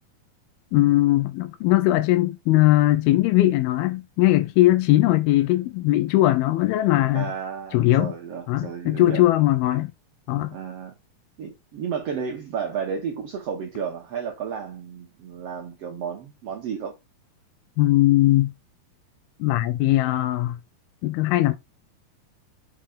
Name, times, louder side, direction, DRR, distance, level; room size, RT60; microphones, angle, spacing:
voice 1, 0.7-7.3 7.7-8.1 8.5-9.9 10.3-10.5 17.8-18.5 19.4-20.6 21.0-21.5, left 16 dB, 85° left, 2.5 m, -20 dB
voice 2, 7.1-9.2 10.5-11.0 11.4-17.0, right 7 dB, 80° right, 1.4 m, -32 dB
6.7 x 5.1 x 3.5 m
omnidirectional pair, 4.3 m